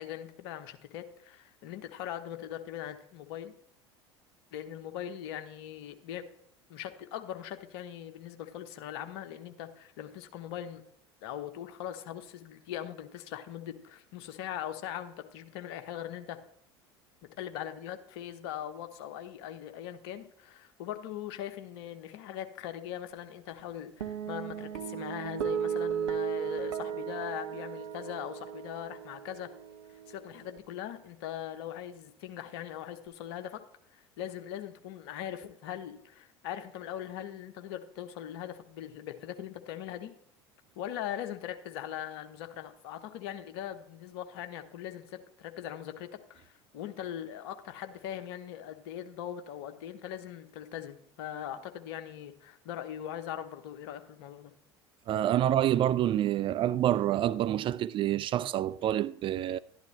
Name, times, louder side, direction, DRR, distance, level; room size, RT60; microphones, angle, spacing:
voice 1, 0.0-3.5 4.5-6.3 6.7-10.8 11.2-16.4 17.4-29.5 29.9-33.6 33.9-40.1 40.8-54.5, left 10 dB, 60° left, 1.0 m, -40 dB
sound 1, 24.0-30.6, right 8 dB, 70° right, 0.8 m, -36 dB
voice 2, 55.1-59.6, right 12 dB, 35° right, 0.4 m, -27 dB
12.0 x 11.0 x 3.2 m
figure-of-eight pair, 70°, 15 cm